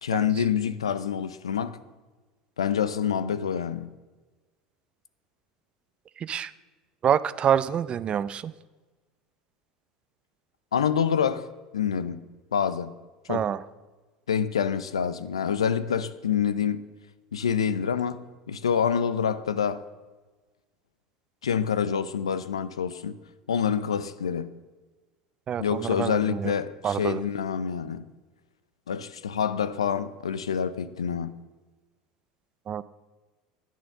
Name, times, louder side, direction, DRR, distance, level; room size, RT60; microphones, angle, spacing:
voice 1, 0.0-1.8 2.6-3.9 10.7-11.5 11.7-12.2 12.5-12.9 13.3-13.4 14.3-16.8 17.3-18.2 18.5-19.8 21.4-23.2 23.5-24.5 25.6-28.1 28.9-31.4, left 7 dB, 90° left, 0.5 m, -27 dB
voice 2, 6.2-6.5 7.0-8.5 13.3-13.6 25.5-26.5 26.8-27.2 32.7-32.8, right 9 dB, 35° right, 0.5 m, -27 dB
10.5 x 9.5 x 6.5 m
hypercardioid pair, 80°, 3 cm